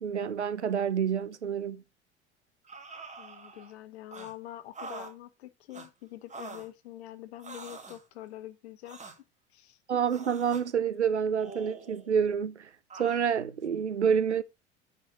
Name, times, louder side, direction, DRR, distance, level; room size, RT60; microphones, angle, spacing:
voice 1, 0.0-1.8 9.9-12.7 13.0-14.4, right 7 dB, 90° right, 0.7 m, -28 dB
sound 1, 2.7-3.8 4.1-4.3 4.7-5.1 5.7-5.9 6.3-6.7 7.4-8.0 8.9-9.2 10.1-10.7 11.4-12.1 12.9-13.2, right 4 dB, 20° right, 2.0 m, -45 dB
voice 2, 3.2-9.2 9.5-9.8, left 14 dB, 70° left, 1.2 m, -45 dB
10.0 x 4.4 x 4.5 m
figure-of-eight pair, 70°, 34 cm